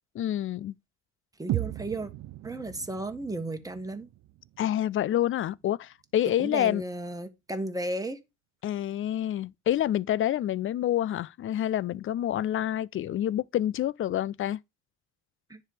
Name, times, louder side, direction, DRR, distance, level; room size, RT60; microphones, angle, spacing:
voice 1, 0.1-0.7 4.6-6.8 8.6-14.6, left 12 dB, 40° left, 0.4 m, -28 dB
voice 2, 1.4-2.1 2.4-4.1 6.4-8.2 15.5-15.6, right 2 dB, 10° right, 1.4 m, -34 dB
sound 1, 1.5-5.5, right 14 dB, 55° right, 0.5 m, -37 dB
9.9 x 3.5 x 4.9 m
supercardioid pair, 70°, 33 cm